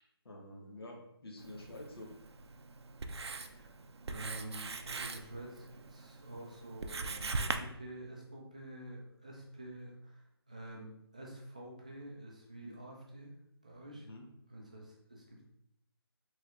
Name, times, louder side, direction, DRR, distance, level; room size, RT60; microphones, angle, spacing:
voice 1, 0.2-2.1 14.0-14.2, left 1 dB, 70° left, 0 dB, 1.1 m, -48 dB
Writing, 1.4-7.6, right 3 dB, 90° right, 0.4 m, -41 dB
voice 2, 4.1-13.3 13.6-14.1 14.5-15.4, right 1 dB, 15° right, -2 dB, 0.4 m, -48 dB
4.4 x 3.2 x 2.4 m, 0.77 s
hypercardioid pair, 175°, 13 cm